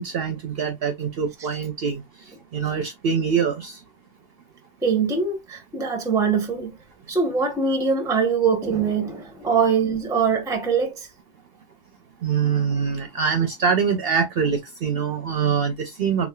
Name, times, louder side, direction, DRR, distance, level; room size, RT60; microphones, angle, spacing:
voice 1, 0.0-3.8 12.2-16.3, right 6 dB, 60° right, 0.7 m, -24 dB
voice 2, 4.8-6.8 7.1-11.1, right 5 dB, 5° right, 0.5 m, -23 dB
3.5 x 3.2 x 2.2 m
omnidirectional pair, 1.4 m